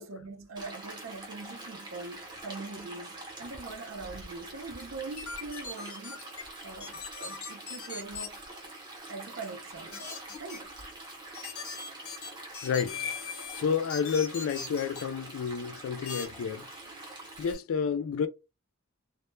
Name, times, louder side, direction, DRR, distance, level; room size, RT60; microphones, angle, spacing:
voice 1, 0.0-6.3 6.6-8.6 9.1-10.1 10.4-10.7, right 3 dB, 65° right, 0.5 m, -42 dB
Stream, 0.6-17.6, right 2 dB, 20° right, 0.7 m, -45 dB
sound 1, 5.2-6.4 6.8-8.3 9.9-10.6 11.3-13.6 13.9-15.0 16.1-16.3, left 5 dB, 90° left, 0.8 m, -39 dB
sound 2, 10.0-12.3 12.7-17.4, right 1 dB, 25° left, 0.6 m, -64 dB
voice 2, 12.6-13.0 13.5-16.7 17.4-18.3, left 6 dB, 70° left, 0.3 m, -30 dB
2.1 x 2.0 x 3.0 m
head